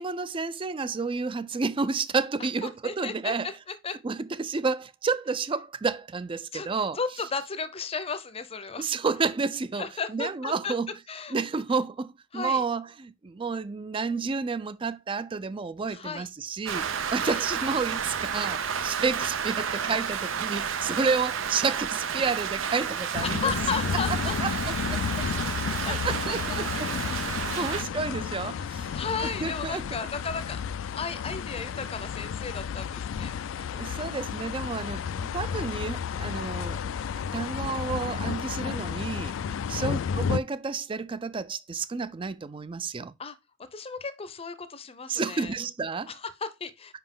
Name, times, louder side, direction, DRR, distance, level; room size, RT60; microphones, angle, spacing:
voice 1, 0.0-3.5 4.0-7.0 8.8-10.9 11.3-16.9 17.1-23.5 24.1-25.3 25.8-26.9 27.6-29.0 29.4-29.8 33.7-36.8 37.2-39.4 39.7-43.1 45.1-46.1, right 4 dB, 25° right, 0.4 m, -30 dB
voice 2, 2.6-4.0 6.5-8.8 9.7-10.7 11.1-11.3 12.3-12.6 15.9-16.3 17.2-17.5 23.2-24.4 25.9-26.0 27.6-27.9 28.9-33.3 39.7-39.9 43.2-43.4 43.7-45.6 46.1-47.0, left 5 dB, 30° left, 0.6 m, -34 dB
Rain, 16.7-27.8, right 7 dB, 85° right, 0.6 m, -31 dB
sound 1, 23.1-40.4, left 7 dB, 75° left, 0.3 m, -32 dB
5.7 x 5.0 x 3.6 m
head